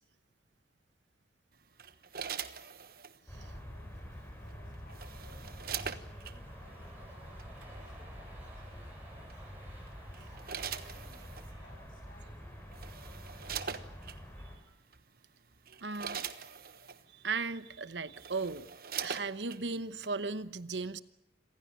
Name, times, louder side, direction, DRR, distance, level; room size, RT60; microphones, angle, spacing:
sound 1, 1.8-3.2 4.5-6.4 7.4-7.6 9.3-9.6 10.1-11.5 12.3-12.4 12.7-14.2 14.9-15.1 15.5-17.0 17.7-17.8 18.1-19.6 20.0-20.1, right 7 dB, 55° right, 1.2 m, -42 dB
voice 1, 3.1-9.3 10.1-12.6, left 1 dB, 50° left, 4 dB, 7.2 m, -63 dB
sound 2, 3.3-14.6, equal, 10° left, 5.1 m, -47 dB
sound 3, 6.0-14.1 14.4-14.5, right 1 dB, 10° right, 6.4 m, -58 dB
voice 2, 15.8-16.2 17.1-18.7 19.0-21.0, right 4 dB, 85° right, 14 dB, 1.0 m, -36 dB
27.0 x 16.5 x 9.1 m, 0.83 s
head